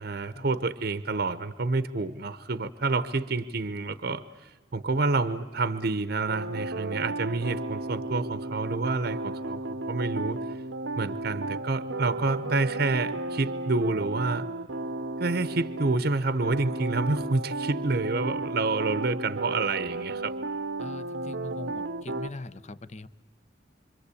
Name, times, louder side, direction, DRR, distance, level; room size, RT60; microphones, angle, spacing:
voice 1, 0.0-10.4 11.0-14.5 15.2-20.3, right 3 dB, 55° right, 14 dB, 0.8 m, -28 dB
sound 1, 6.3-16.0 16.4-22.3, right 2 dB, 90° right, 0.8 m, -34 dB
voice 2, 20.8-23.1, left 2 dB, 40° left, 15 dB, 0.8 m, -41 dB
26.5 x 25.5 x 8.3 m, 1.2 s
head